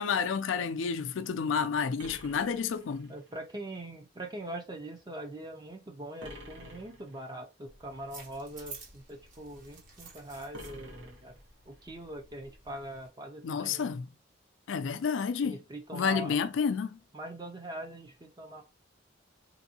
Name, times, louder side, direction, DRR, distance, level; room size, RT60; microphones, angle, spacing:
voice 1, 0.0-3.1 13.4-14.1 14.7-15.6 15.9-17.0, left 6 dB, 75° left, 0.4 m, -30 dB
sound 1, 2.0-3.4 6.2-7.4 10.5-11.9, equal, 65° right, 0.9 m, -48 dB
voice 2, 3.1-11.3 11.7-13.9 15.4-16.4 17.1-18.6, right 1 dB, 20° right, 0.6 m, -42 dB
sound 2, 7.7-13.1, right 4 dB, 45° right, 1.1 m, -52 dB
3.4 x 2.7 x 2.7 m
head